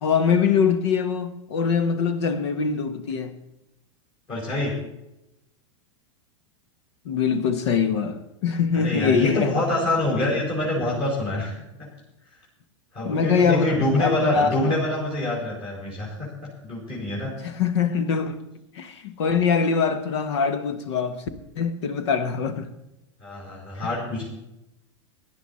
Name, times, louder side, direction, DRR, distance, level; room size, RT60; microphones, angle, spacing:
voice 1, 0.0-3.3 7.0-9.5 13.0-14.7 17.4-18.4 18.7-21.2 21.6-22.7 23.8-23.9, left 6 dB, 60° left, 1.4 m, -23 dB
voice 2, 4.3-4.7 8.7-11.5 12.9-16.3 16.6-17.4 23.2-24.3, left 1 dB, 35° left, 4.9 m, -25 dB
17.5 x 11.0 x 4.2 m
figure-of-eight pair, 95°, 16 cm